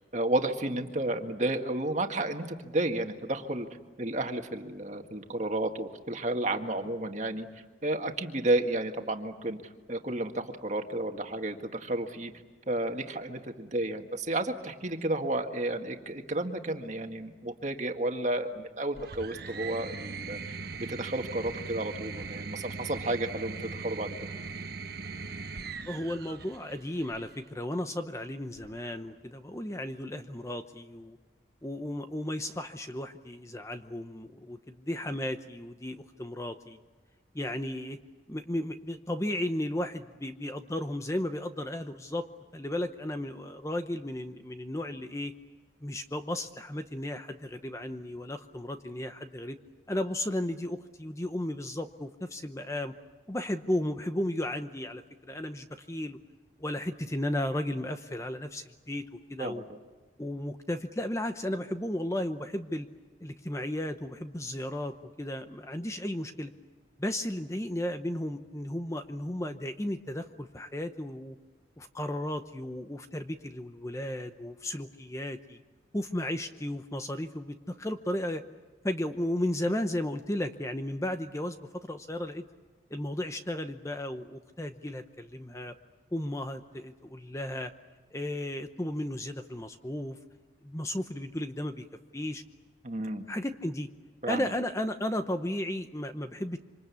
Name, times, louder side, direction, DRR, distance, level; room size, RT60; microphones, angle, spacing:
voice 1, 0.1-3.7 4.0-7.5 7.8-9.6 9.9-12.3 12.7-24.3 59.4-59.8 92.8-93.3 94.2-94.5, right 1 dB, 40° right, 5 dB, 1.8 m, -32 dB
sound 1, 18.9-27.4 28.6-29.2, right 4 dB, 55° right, 1.2 m, -40 dB
voice 2, 25.9-31.2 31.6-36.8 37.3-38.0 38.3-42.3 42.5-45.3 45.8-49.6 49.9-52.9 53.3-56.2 56.6-59.6 60.2-62.9 63.2-66.5 67.0-71.4 71.8-75.6 75.9-78.4 78.8-82.4 82.9-85.7 86.1-87.7 88.1-90.2 90.6-91.8 92.1-92.4 93.3-93.9 94.3-96.6, left 1 dB, 15° left, 8 dB, 0.8 m, -34 dB
26.5 x 26.0 x 8.4 m, 1.3 s
head